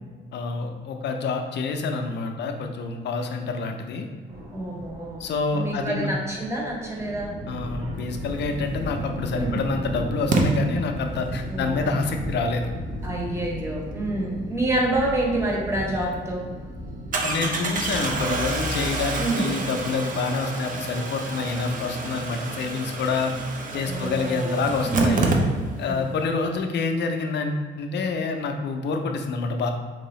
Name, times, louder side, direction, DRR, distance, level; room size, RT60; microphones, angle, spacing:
voice 1, 0.3-4.1 5.2-6.1 7.5-12.7 17.2-23.3 23.7-25.4 25.8-29.7, left 4 dB, 60° left, 4 dB, 0.5 m, -27 dB
sound 1, 4.3-18.9, equal, 85° right, 1.1 m, -35 dB
voice 2, 4.5-5.2 5.5-7.3 9.4-9.6 11.5-11.8 13.0-16.5 19.2-19.5 23.8-24.6 24.9-25.3 25.9-26.1, right 2 dB, 15° right, -2 dB, 0.9 m, -27 dB
Engine starting, 8.8-8.9 10.3-10.4 15.5-15.6 16.0-16.1 17.1-25.9 26.2-26.3 26.5-26.6, right 3 dB, 40° right, 0.6 m, -28 dB
3.7 x 2.7 x 3.1 m, 1.5 s
cardioid pair, 90°, 20 cm